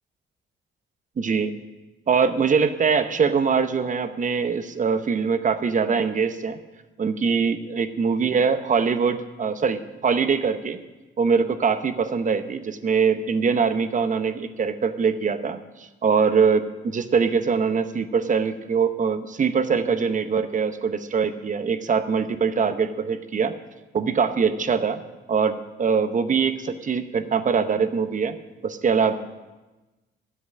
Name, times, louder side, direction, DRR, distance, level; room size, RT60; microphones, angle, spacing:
voice 1, 1.2-1.5 2.1-6.6 7.0-10.8 11.2-23.5 23.9-25.0 25.3-28.4 28.6-29.1, right 5 dB, 40° right, 10 dB, 0.8 m, -23 dB
9.8 x 7.9 x 8.5 m, 1.1 s
cardioid pair, 90°, 20 cm